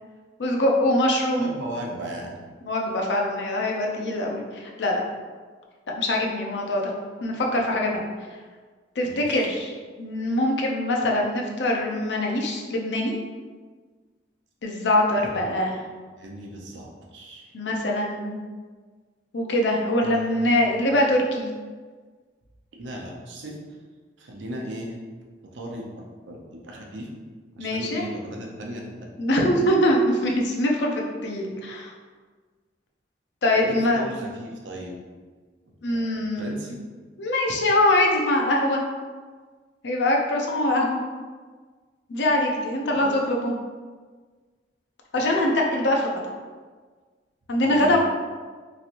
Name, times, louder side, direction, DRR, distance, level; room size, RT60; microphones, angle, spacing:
voice 1, 0.4-1.5 2.6-5.0 5.9-6.9 7.2-8.1 9.0-9.7 10.0-13.1 14.6-15.8 17.5-18.3 19.3-21.5 27.6-28.0 29.2-31.9 33.4-34.0 35.8-36.6 37.2-38.8 39.8-41.0 42.1-43.5 45.1-46.1 47.5-48.0, left 1 dB, 70° left, 0 dB, 0.5 m, -23 dB
voice 2, 1.4-2.3 9.0-9.5 15.1-15.4 16.2-17.5 20.0-20.7 22.8-23.6 24.2-24.9 25.4-27.1 27.5-29.3 33.6-34.9 35.9-36.8 43.0-43.2 47.6-48.0, right 1 dB, 90° right, 0 dB, 0.6 m, -37 dB
3.1 x 2.8 x 2.5 m, 1.5 s
head